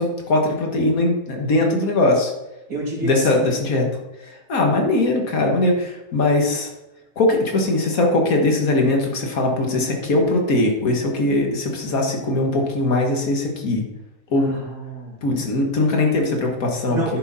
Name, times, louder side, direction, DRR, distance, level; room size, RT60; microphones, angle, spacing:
voice 1, 0.0-2.3 3.0-3.9 4.2-6.7 7.2-13.8 14.3-14.5 15.2-17.0, left 2 dB, 90° left, 1 dB, 2.0 m, -20 dB
voice 2, 2.7-3.5 14.4-15.2 16.9-17.2, right 2 dB, 85° right, -4 dB, 3.2 m, -29 dB
10.5 x 6.7 x 4.2 m, 0.96 s
omnidirectional pair, 1.4 m